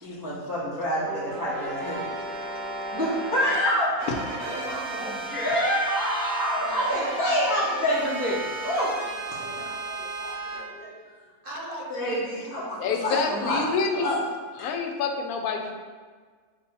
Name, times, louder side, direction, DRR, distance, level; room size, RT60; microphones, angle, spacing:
voice 1, 0.0-2.0 2.9-3.9 5.3-8.3 8.6-8.9 9.3-9.4 11.9-13.7 13.9-14.2 14.6-14.7, equal, 20° right, -9 dB, 0.7 m, -27 dB
sound 1, 1.0-3.6 4.0-10.6, right 2 dB, 65° right, 1.3 m, -34 dB
voice 2, 1.4-3.6 4.3-5.3 6.6-10.9 11.2-13.4, right 1 dB, 40° right, -7 dB, 1.3 m, -41 dB
voice 3, 12.8-14.1 14.6-15.7, left 5 dB, 75° left, 4 dB, 1.0 m, -27 dB
4.0 x 2.6 x 4.5 m, 1.5 s
omnidirectional pair, 1.6 m